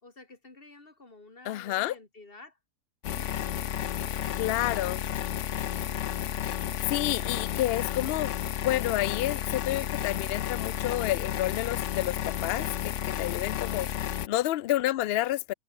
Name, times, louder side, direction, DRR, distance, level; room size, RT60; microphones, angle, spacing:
voice 1, 0.0-2.6, left 3 dB, 35° left, 3.2 m, -52 dB
voice 2, 1.5-1.9 4.3-5.0 6.9-15.5, left 15 dB, 90° left, 0.5 m, -30 dB
sound 1, 3.0-14.3, left 10 dB, 60° left, 1.0 m, -32 dB
omnidirectional pair, 1.6 m